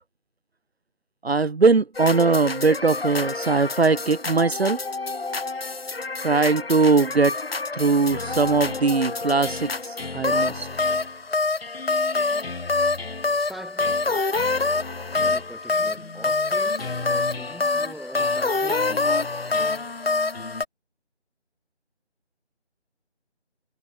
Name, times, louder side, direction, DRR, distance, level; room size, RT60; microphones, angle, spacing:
voice 1, 1.2-4.8 6.2-7.3 7.8-9.7 10.1-10.7, right 4 dB, 65° right, 1.1 m, -20 dB
sound 1, 2.0-20.6, left 3 dB, 60° left, 1.8 m, -26 dB
voice 2, 13.4-14.3 15.2-19.1, right 1 dB, ahead, 5.3 m, -42 dB
figure-of-eight pair, 165°, 34 cm